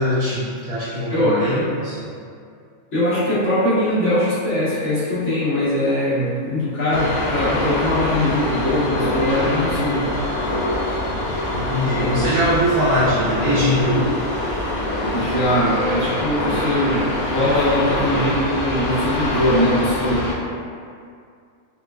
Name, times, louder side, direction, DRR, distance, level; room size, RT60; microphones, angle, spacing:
voice 1, 0.0-2.1 11.2-14.1, equal, 70° right, -11 dB, 1.0 m, -21 dB
voice 2, 1.1-1.6 2.9-10.1 15.1-20.3, left 1 dB, 60° left, -11 dB, 1.4 m, -21 dB
sound 1, 6.9-20.3, left 1 dB, 90° left, 1.0 m, -24 dB
4.3 x 2.1 x 2.3 m, 2.3 s
omnidirectional pair, 1.4 m